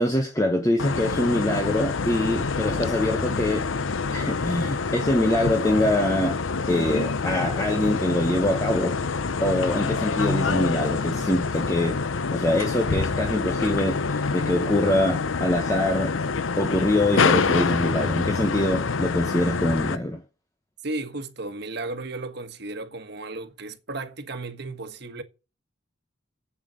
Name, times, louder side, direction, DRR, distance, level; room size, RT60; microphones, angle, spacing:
voice 1, 0.0-3.7 4.1-6.4 6.7-9.0 9.4-12.0 12.3-16.2 16.6-20.2, left 1 dB, 15° left, 1.0 m, -24 dB
sound 1, 0.8-20.0, left 4 dB, 85° left, 0.7 m, -26 dB
voice 2, 20.8-25.2, right 2 dB, 60° right, 1.5 m, -34 dB
8.2 x 7.0 x 8.2 m
head